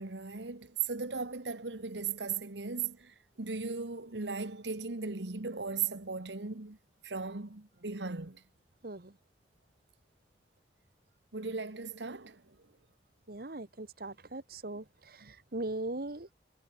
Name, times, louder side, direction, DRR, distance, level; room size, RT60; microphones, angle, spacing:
voice 1, 0.0-6.8 7.0-8.4 11.3-12.4 15.2-15.3, right 5 dB, 85° right, 1.5 m, -37 dB
voice 2, 13.3-16.3, right 2 dB, 60° right, 1.5 m, -40 dB
head